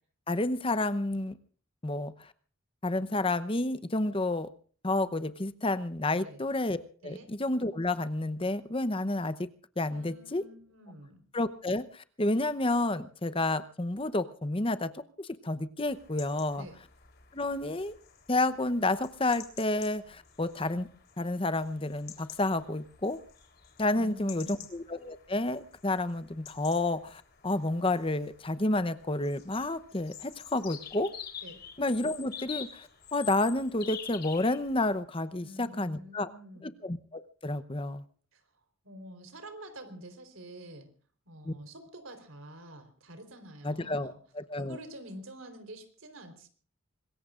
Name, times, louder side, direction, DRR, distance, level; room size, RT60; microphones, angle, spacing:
voice 1, 0.3-1.4 1.8-2.3 2.8-4.5 4.8-6.8 7.0-9.5 9.8-10.4 11.3-16.7 17.3-17.9 18.3-20.9 21.2-23.2 23.8-31.1 31.8-36.3 36.6-38.0 41.4-41.5 43.6-44.8, left 2 dB, 25° left, 13 dB, 0.8 m, -30 dB
voice 2, 6.1-6.4 7.0-7.3 9.9-11.2 16.6-16.8 23.9-24.7 31.4-31.6 35.4-36.7 38.3-38.4 38.8-40.9 41.3-44.2 44.6-46.5, right 1 dB, 80° right, 8 dB, 4.0 m, -47 dB
sound 1, 15.8-35.0, left 8 dB, 50° left, 3.6 m, -48 dB
25.5 x 21.0 x 2.5 m, 0.43 s
head